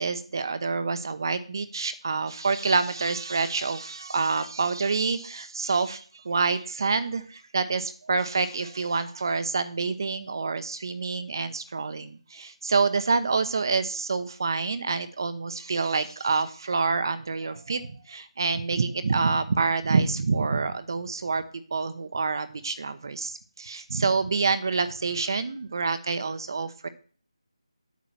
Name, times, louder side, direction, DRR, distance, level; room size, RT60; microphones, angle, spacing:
voice 1, 0.0-26.9, right 4 dB, 40° right, 12 dB, 0.8 m, -27 dB
8.4 x 5.7 x 7.7 m, 0.43 s
figure-of-eight pair, 170°, 3 cm